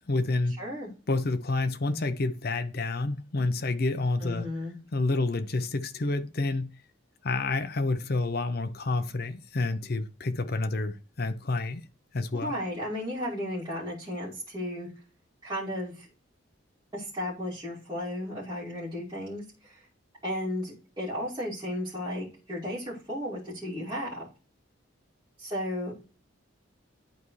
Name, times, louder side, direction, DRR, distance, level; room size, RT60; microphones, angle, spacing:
voice 1, 0.0-0.6 1.1-4.5 4.9-6.7 7.2-11.9 12.1-12.5, left 2 dB, 50° left, 0.6 m, -29 dB
voice 2, 0.6-0.9 4.2-4.8 12.3-14.9 15.4-16.1 16.9-19.8 20.2-24.3 25.4-25.9, left 1 dB, 20° right, 2.5 m, -34 dB
10.5 x 4.1 x 3.1 m
head